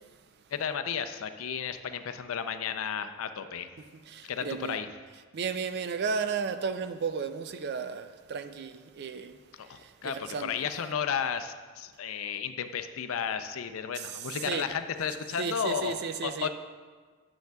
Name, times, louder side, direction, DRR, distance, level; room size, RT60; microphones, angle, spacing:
voice 1, 0.5-3.7 4.2-4.9 9.6-16.5, left 7 dB, 85° left, 0.4 m, -33 dB
voice 2, 4.1-4.8 5.3-10.5 14.0-14.7 15.4-16.5, right 5 dB, 50° right, 0.4 m, -34 dB
10.5 x 7.0 x 2.3 m
head